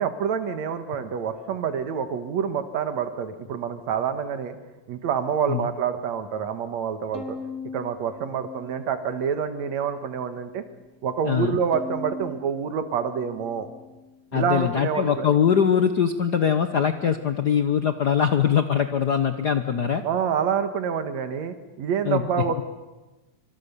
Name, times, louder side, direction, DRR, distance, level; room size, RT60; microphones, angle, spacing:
voice 1, 0.0-4.6 4.9-7.4 7.7-10.6 11.0-13.7 14.3-15.3 20.0-22.6, right 7 dB, 70° right, 9 dB, 2.6 m, -27 dB
Bowed string instrument, 7.1-9.5 10.0-10.7 11.7-14.2, left 1 dB, 25° left, 2.7 m, -41 dB
voice 2, 11.2-11.6 14.3-20.0 22.0-22.2, left 8 dB, 80° left, 9 dB, 0.9 m, -22 dB
26.5 x 25.0 x 6.9 m, 1.1 s
omnidirectional pair, 3.3 m